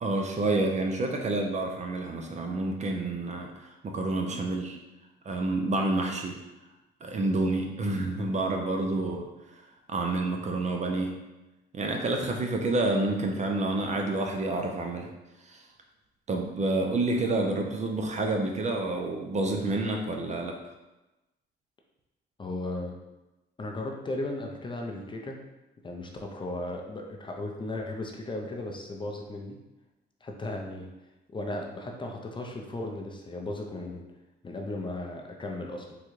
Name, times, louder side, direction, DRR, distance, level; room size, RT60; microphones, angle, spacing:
voice 1, 0.0-4.8 5.2-6.4 7.0-9.6 9.9-11.2 11.7-15.1 15.4-15.7 16.3-20.6, right 2 dB, 35° right, 2 dB, 0.5 m, -29 dB
voice 2, 22.4-22.9 23.6-25.4 25.8-29.6 30.2-30.9 31.3-34.0 34.4-36.0, left 2 dB, 25° left, 1 dB, 0.5 m, -36 dB
3.7 x 2.2 x 3.1 m, 1.0 s
cardioid pair, 90°, 20 cm